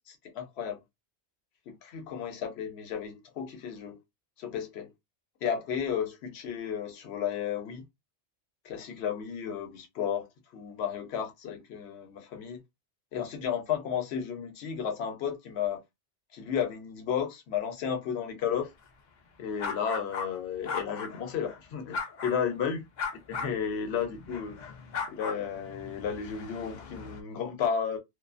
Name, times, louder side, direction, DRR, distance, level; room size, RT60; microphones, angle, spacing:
voice 1, 0.1-0.8 1.8-4.0 4.4-4.9 5.4-7.9 8.6-10.3 10.5-12.6 13.1-15.8 16.3-18.7 19.4-22.9 23.3-24.7 25.1-28.0, left 7 dB, 70° left, 0.9 m, -33 dB
sound 1, 19.6-20.3 20.6-21.6 21.9-22.5 23.0-27.2, left 5 dB, 50° left, 0.6 m, -38 dB
2.3 x 2.3 x 2.4 m
omnidirectional pair, 1.1 m